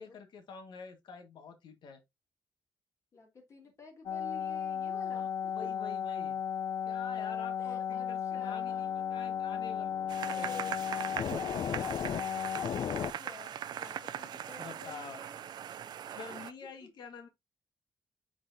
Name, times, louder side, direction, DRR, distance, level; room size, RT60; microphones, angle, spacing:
voice 1, 0.0-2.0 5.1-5.3 5.5-6.4 6.8-9.9 10.3-10.5 14.6-15.2 16.1-17.3, left 5 dB, 80° left, 1.6 m, -47 dB
voice 2, 3.1-5.5 7.6-9.0 10.1-15.4 16.3-16.4 16.8-16.9, left 3 dB, 40° left, 2.3 m, -52 dB
sound 1, 4.1-13.1, left 8 dB, 65° left, 0.5 m, -34 dB
Coffee maker, 10.1-16.5, right 10 dB, 70° right, 0.4 m, -40 dB
8.6 x 4.1 x 2.7 m
wide cardioid pair, 160°, 8 cm